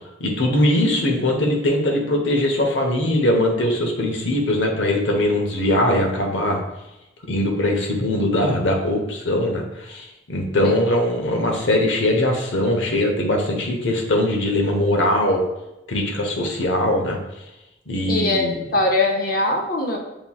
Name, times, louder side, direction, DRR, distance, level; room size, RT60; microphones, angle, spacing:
voice 1, 0.2-6.6 7.3-15.4 15.9-17.2 17.9-18.6, left 1 dB, 85° left, 1 dB, 0.9 m, -21 dB
voice 2, 18.1-20.0, left 2 dB, 50° left, 2 dB, 0.7 m, -21 dB
7.1 x 2.9 x 2.3 m, 0.93 s
head